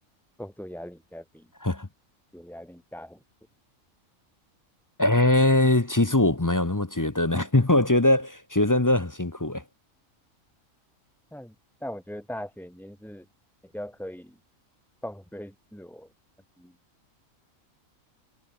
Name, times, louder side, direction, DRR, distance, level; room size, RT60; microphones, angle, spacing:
voice 1, 0.4-1.5 2.3-3.2 11.3-11.5 11.8-13.2 13.6-14.4 15.0-16.1 16.6-16.7, equal, ahead, 1.7 m, -40 dB
voice 2, 5.0-9.6, left 2 dB, 15° left, 0.7 m, -22 dB
omnidirectional pair, 1.4 m